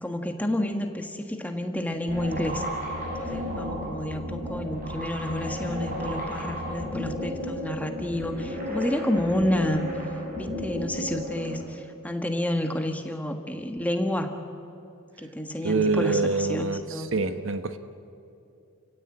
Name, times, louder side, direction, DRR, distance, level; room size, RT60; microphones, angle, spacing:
voice 1, 0.0-2.6 3.2-9.9 10.4-14.4 15.2-17.1, left 1 dB, 5° left, 5 dB, 1.4 m, -30 dB
sound 1, 2.1-11.5, equal, 40° right, 7.5 m, -33 dB
voice 2, 15.6-17.8, right 3 dB, 60° right, 9 dB, 1.1 m, -25 dB
29.0 x 16.0 x 8.9 m, 2.7 s
head